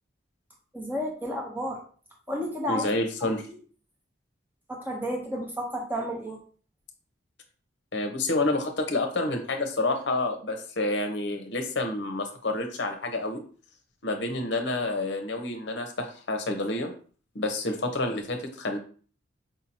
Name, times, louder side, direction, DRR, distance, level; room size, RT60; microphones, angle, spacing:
voice 1, 0.7-1.8 2.3-2.9 3.2-3.3 4.7-6.4, equal, 10° right, -1 dB, 0.8 m, -31 dB
voice 2, 2.7-3.5 7.9-13.4 14.0-16.9 17.3-18.8, left 2 dB, 60° left, 5 dB, 0.7 m, -29 dB
4.9 x 2.7 x 2.8 m, 0.42 s
head